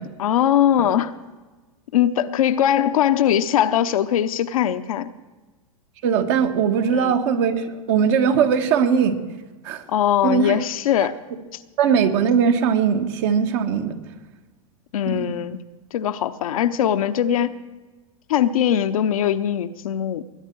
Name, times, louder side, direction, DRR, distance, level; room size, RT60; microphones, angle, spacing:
voice 1, 0.2-1.1 1.9-5.1 6.9-7.2 9.9-11.2 14.9-15.6 15.9-17.5 18.3-20.2, left 10 dB, 75° left, 10 dB, 0.9 m, -21 dB
voice 2, 6.0-9.2 9.6-9.8 10.2-10.6 11.8-14.0 15.1-15.2, right 7 dB, 55° right, 7 dB, 1.5 m, -20 dB
20.5 x 10.0 x 4.6 m, 1.3 s
hypercardioid pair, 110°, 18 cm